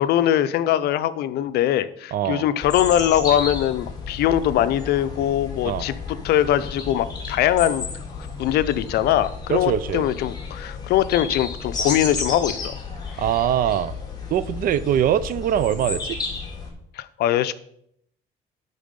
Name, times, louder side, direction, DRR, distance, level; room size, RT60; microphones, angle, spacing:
voice 1, 0.0-7.9 8.4-12.8 17.0-17.5, left 11 dB, 75° left, 13 dB, 0.5 m, -22 dB
voice 2, 2.1-2.4 5.6-5.9 9.5-10.1 13.2-13.9 14.3-16.2, right 10 dB, 60° right, 16 dB, 0.5 m, -22 dB
sound 1, 2.6-16.7, left 4 dB, 25° left, 2.0 m, -32 dB
10.5 x 4.1 x 5.2 m, 0.70 s
cardioid pair, 110°, 17 cm